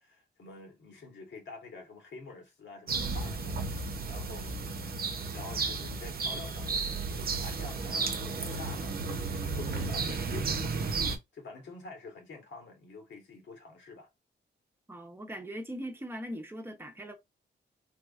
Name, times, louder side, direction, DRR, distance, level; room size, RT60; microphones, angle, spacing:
voice 1, 0.0-3.6 4.0-4.7 5.3-11.0 11.3-14.1, left 3 dB, 75° left, 1.5 m, -47 dB
sound 1, 2.9-11.2, right 4 dB, 50° right, 0.8 m, -33 dB
voice 2, 14.9-17.1, equal, 10° right, 0.9 m, -40 dB
3.4 x 3.0 x 2.5 m
cardioid pair, 100°, 19 cm